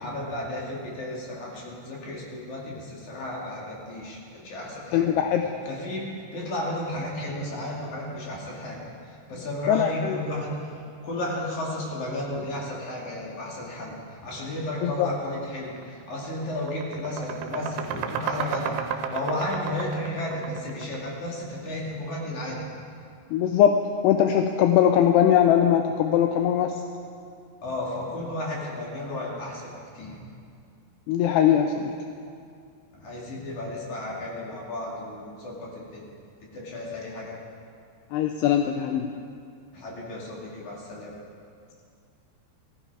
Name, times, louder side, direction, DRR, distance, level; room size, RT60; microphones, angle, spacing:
voice 1, 0.0-5.1 5.7-10.7 11.0-22.7 27.6-30.2 32.9-36.1 36.5-37.4 39.7-41.1, left 1 dB, 50° left, -3 dB, 3.3 m, -33 dB
voice 2, 4.9-5.5 9.7-10.2 14.8-15.1 23.3-26.8 31.1-31.9 38.1-39.1, left 9 dB, 80° left, 5 dB, 2.6 m, -21 dB
sound 1, 15.7-15.9 16.2-21.2, right 7 dB, 85° right, 3.0 m, -32 dB
16.0 x 15.0 x 4.7 m, 2.4 s
omnidirectional pair, 4.9 m